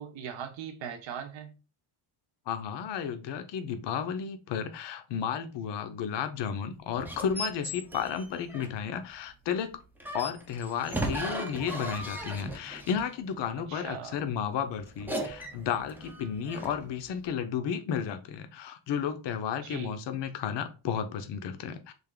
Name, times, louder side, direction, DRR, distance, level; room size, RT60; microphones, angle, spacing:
voice 1, 0.0-1.6 13.7-14.2 19.6-20.0, right 8 dB, 65° right, 0.7 m, -40 dB
voice 2, 2.5-9.8 10.1-21.9, left 7 dB, 60° left, 0.6 m, -33 dB
sound 1, 7.0-8.9 10.0-13.1 14.9-16.9, right 1 dB, 5° right, 0.4 m, -37 dB
3.4 x 2.5 x 3.7 m
cardioid pair, 160°, 49 cm